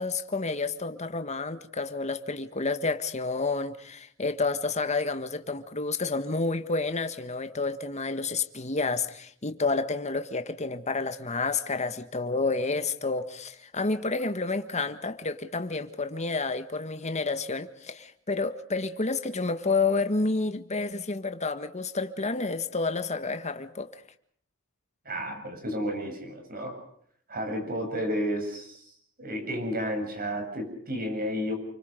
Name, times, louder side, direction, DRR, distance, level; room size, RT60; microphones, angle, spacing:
voice 1, 0.0-24.0, left 3 dB, 35° left, 1.6 m, -30 dB
voice 2, 25.0-26.8 27.3-28.9 29.2-31.5, equal, 45° right, 7.8 m, -32 dB
29.5 x 24.0 x 5.2 m
head